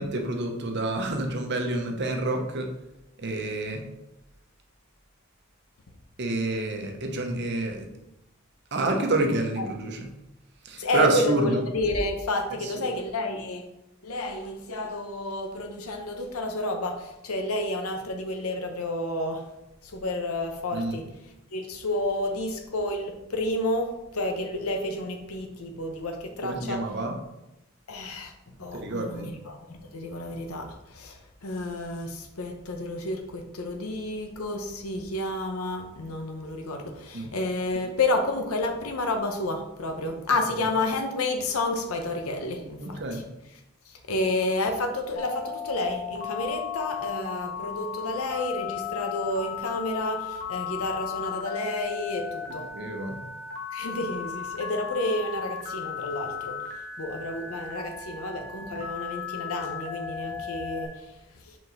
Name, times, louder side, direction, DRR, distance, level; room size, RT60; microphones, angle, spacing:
voice 1, 0.0-2.7 3.2-3.8 6.2-7.9 8.7-10.1 10.6-11.6 12.6-12.7 20.7-21.0 26.4-27.2 28.7-29.3 37.1-37.3 42.8-43.2 52.7-53.2, right 2 dB, 55° right, 3 dB, 1.0 m, -28 dB
voice 2, 10.8-13.7 14.0-19.5 19.8-21.0 21.5-26.8 27.9-28.3 28.6-43.2 43.9-52.7 53.7-56.6 57.0-61.6, left 2 dB, 90° left, 4 dB, 0.8 m, -30 dB
Telephone, 45.2-60.9, left 8 dB, 60° left, 1.1 m, -35 dB
5.3 x 4.7 x 4.0 m, 0.90 s
head